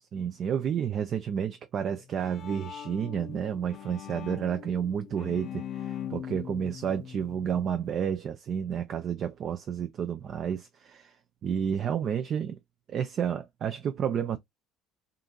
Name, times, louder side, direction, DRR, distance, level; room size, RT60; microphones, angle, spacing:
voice 1, 0.1-11.2 11.4-12.6 12.9-14.4, right 8 dB, 45° right, 0.4 m, -31 dB
Bowed string instrument, 1.9-8.0, left 10 dB, 50° left, 0.4 m, -41 dB
2.8 x 2.5 x 2.3 m
hypercardioid pair, 65°, 0 cm